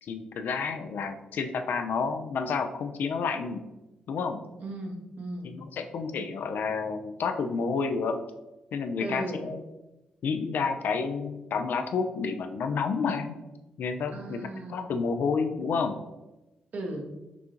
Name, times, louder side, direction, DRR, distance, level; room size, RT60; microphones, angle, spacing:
voice 1, 0.0-3.6 4.1-4.4 5.4-8.2 8.7-9.6 10.2-13.4 13.8-16.0, left 5 dB, 65° left, 7 dB, 0.4 m, -30 dB
voice 2, 4.6-5.5 9.0-9.5 14.1-14.9 16.7-17.1, right 1 dB, 55° right, 2 dB, 0.9 m, -36 dB
6.1 x 2.4 x 2.8 m, 1.0 s
hypercardioid pair, 45°, 3 cm